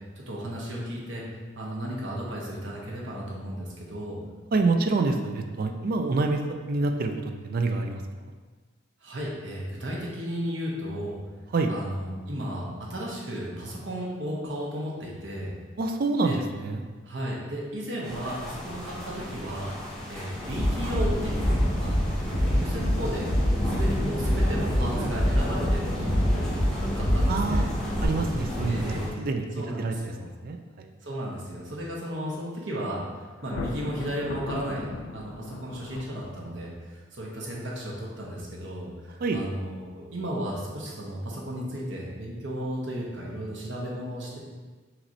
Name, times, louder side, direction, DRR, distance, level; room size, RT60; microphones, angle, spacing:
voice 1, 0.2-1.2 1.6-4.2 9.0-11.2 11.7-15.5 16.2-16.4 17.0-19.7 20.1-23.2 23.7-26.3 27.0-27.6 28.7-29.1 29.6-30.3 31.0-33.0 33.4-44.4, equal, 60° right, -4 dB, 1.0 m, -34 dB
voice 2, 4.5-6.4 6.7-8.0 11.5-11.7 15.8-16.9 27.3-27.7 28.0-29.4 29.8-30.0 30.4-30.9 39.2-39.4, right 3 dB, 45° right, 5 dB, 0.3 m, -26 dB
sound 1, 18.0-29.1, equal, 5° left, 0.8 m, -31 dB
Bass drum, 20.6-21.0 21.4-22.0 22.3-22.9 23.3-23.9 24.2-24.8 25.1-25.7 26.1-26.7 27.0-27.6 27.9-28.0, equal, 80° left, 1.3 m, -24 dB
Thunder, 33.4-36.7, left 3 dB, 65° left, 0.3 m, -38 dB
5.8 x 3.1 x 2.7 m, 1.4 s
head